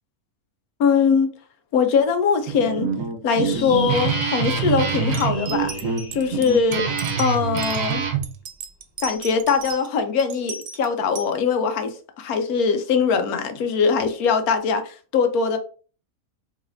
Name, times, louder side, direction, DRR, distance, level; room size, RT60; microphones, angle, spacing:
voice 1, 0.8-1.3 1.7-2.9 3.2-5.7 6.1-8.0 9.0-15.6, left 5 dB, 85° left, 1.1 m, -21 dB
Guitar, 2.5-8.2, right 6 dB, 70° right, 1.1 m, -25 dB
sound 1, 3.3-8.1, left 4 dB, 45° left, 0.5 m, -38 dB
sound 2, 5.1-7.8 8.2-9.9 10.2-11.3, right 6 dB, 90° right, 1.1 m, -36 dB
4.8 x 3.2 x 2.6 m
omnidirectional pair, 1.5 m